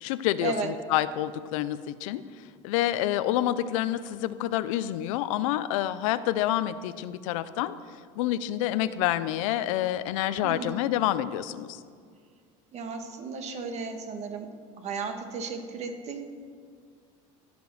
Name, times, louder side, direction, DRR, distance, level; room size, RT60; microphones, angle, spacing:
voice 1, 0.0-2.2 2.6-7.7 8.2-11.8, left 13 dB, 85° left, 14 dB, 0.5 m, -28 dB
voice 2, 10.4-10.8 12.7-14.5 14.8-16.3, right 5 dB, 40° right, 5 dB, 1.5 m, -34 dB
15.5 x 5.2 x 6.2 m, 2.1 s
supercardioid pair, 125°, 17 cm